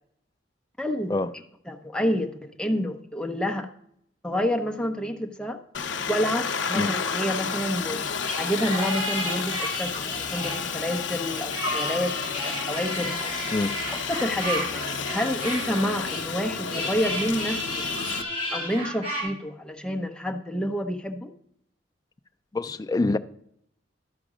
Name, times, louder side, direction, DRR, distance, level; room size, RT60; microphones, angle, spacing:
voice 1, 0.8-1.1 1.7-3.7 4.2-5.6 6.1-13.2 14.1-17.9 18.5-21.3, equal, 5° left, 0.7 m, -29 dB
Aircraft, 5.7-18.2, left 6 dB, 70° left, 0.6 m, -31 dB
sound 1, 7.4-19.2, equal, 30° right, 4.1 m, -33 dB
voice 2, 22.5-23.2, left 2 dB, 20° left, 0.3 m, -25 dB
12.0 x 5.1 x 4.9 m
head